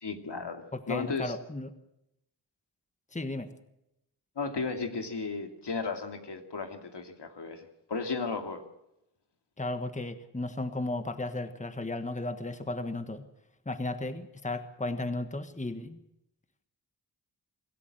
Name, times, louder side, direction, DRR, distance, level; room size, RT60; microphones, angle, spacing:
voice 1, 0.0-1.3 4.4-8.6, left 4 dB, 70° left, 5 dB, 2.7 m, -35 dB
voice 2, 0.7-1.7 3.1-3.5 9.6-13.3 13.6-16.0, left 2 dB, 15° left, 9 dB, 1.4 m, -34 dB
25.5 x 13.5 x 7.7 m, 0.84 s
cardioid pair, 55°, 42 cm